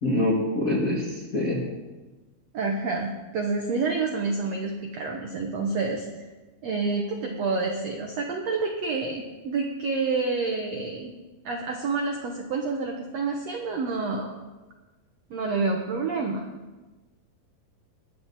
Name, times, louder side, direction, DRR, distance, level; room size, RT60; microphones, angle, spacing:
voice 1, 0.0-1.6, left 1 dB, 40° left, -5 dB, 1.2 m, -25 dB
voice 2, 2.5-6.3 6.6-11.1 11.4-14.3 15.3-16.4, right 4 dB, 70° right, 1 dB, 1.6 m, -28 dB
20.5 x 8.0 x 4.1 m, 1.2 s
omnidirectional pair, 4.4 m